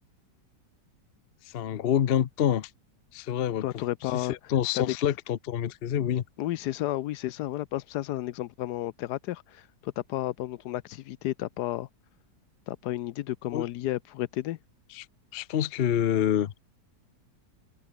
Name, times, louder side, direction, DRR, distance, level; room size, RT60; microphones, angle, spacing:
voice 1, 1.5-2.7 3.1-3.6 4.1-6.2 13.5-13.7 14.9-15.1 15.3-16.5, left 10 dB, 55° left, 0.6 m, -27 dB
voice 2, 3.6-4.4 4.7-4.9 6.4-11.9 12.7-14.6, left 14 dB, 75° left, 1.1 m, -32 dB
open air
omnidirectional pair, 1.8 m